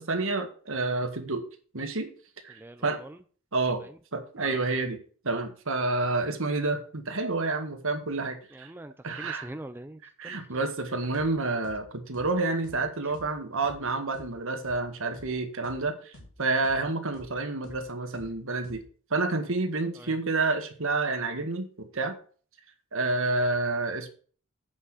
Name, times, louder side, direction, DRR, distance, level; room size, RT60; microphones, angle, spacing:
voice 1, 0.0-1.4 1.7-2.1 2.4-3.0 3.5-8.7 9.0-9.5 10.2-16.1 16.4-18.8 19.1-22.2 22.9-24.1, right 3 dB, 65° right, 6 dB, 1.7 m, -29 dB
voice 2, 2.5-3.2 3.8-4.0 4.4-4.6 8.5-10.4 19.9-20.2, right 1 dB, 10° right, 8 dB, 0.5 m, -44 dB
sound 1, 11.1-11.3 11.6-11.8 12.1-12.3 12.6-12.8 13.1-13.3 13.6-13.8 14.1-14.3 14.6-14.8 15.1-15.3 15.6-15.8 16.1-16.3 16.6-16.8 17.1-17.3 17.6-17.8 18.1-18.3 18.6-18.8, left 1 dB, 70° left, 2.4 m, -49 dB
8.2 x 6.0 x 6.4 m, 0.42 s
head